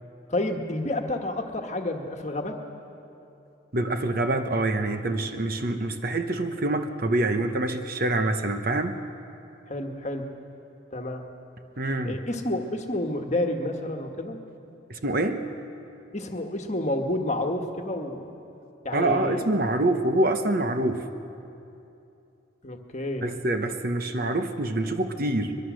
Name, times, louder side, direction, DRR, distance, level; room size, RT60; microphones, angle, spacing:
voice 1, 0.3-2.6 9.7-10.3 10.9-11.3 12.0-14.4 16.1-18.3 18.8-19.4 22.6-23.3, left 1 dB, 35° left, 4 dB, 1.4 m, -30 dB
voice 2, 3.7-9.0 11.8-12.2 14.9-15.4 18.9-21.0 23.2-25.6, right 2 dB, 45° right, 7 dB, 1.0 m, -26 dB
22.5 x 22.0 x 6.3 m, 2.8 s
head